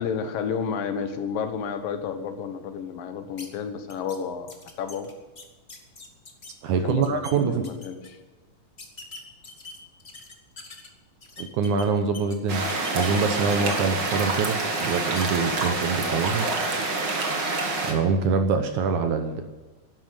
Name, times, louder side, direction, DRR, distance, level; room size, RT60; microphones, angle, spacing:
voice 1, 0.0-5.1 6.8-8.2, left 6 dB, 85° left, 8 dB, 3.0 m, -31 dB
sound 1, 3.4-3.5 3.9-4.2 4.5-6.5 6.9-7.3 7.6-8.1 8.8-10.9 11.2-12.4 12.7-14.1 14.5-15.9 16.2-16.3 16.6-16.9, left 3 dB, 35° left, 1.0 m, -43 dB
voice 2, 6.6-7.7 11.4-12.6 12.9-16.5 17.8-19.4, right 5 dB, 70° right, 6 dB, 2.3 m, -24 dB
sound 2, 12.5-17.9, right 3 dB, 40° right, 2.1 m, -27 dB
12.5 x 10.5 x 9.5 m, 1.2 s
omnidirectional pair, 3.9 m